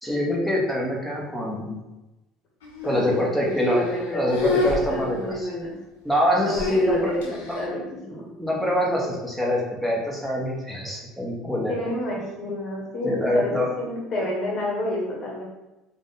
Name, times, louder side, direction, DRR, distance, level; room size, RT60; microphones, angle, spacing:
voice 1, 0.0-1.8 2.8-3.9 4.1-5.5 6.0-7.6 8.4-11.8 13.0-13.7, equal, ahead, -3 dB, 1.2 m, -25 dB
sound 1, 2.6-3.2 3.5-4.0 4.3-5.5 6.5-7.7, left 3 dB, 90° left, 0.7 m, -29 dB
voice 2, 2.8-5.7 6.4-8.2 11.7-15.4, left 1 dB, 45° left, -2 dB, 1.3 m, -29 dB
3.5 x 2.5 x 4.1 m, 1.0 s
hypercardioid pair, 80°, 0 cm